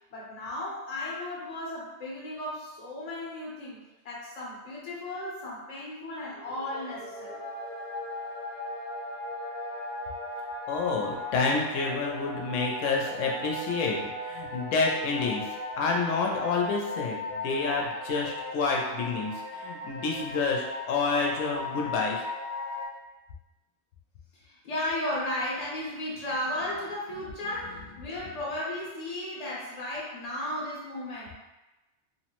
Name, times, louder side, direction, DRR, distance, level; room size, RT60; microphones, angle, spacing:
voice 1, 0.1-3.8 4.0-7.4 24.4-31.4, left 1 dB, 40° left, -5 dB, 0.7 m, -35 dB
sound 1, 6.4-22.9, left 2 dB, 65° left, 0.4 m, -37 dB
voice 2, 10.7-15.5 15.8-22.2, left 4 dB, 90° left, 0 dB, 0.9 m, -29 dB
3.0 x 2.0 x 2.9 m, 1.1 s
omnidirectional pair, 1.3 m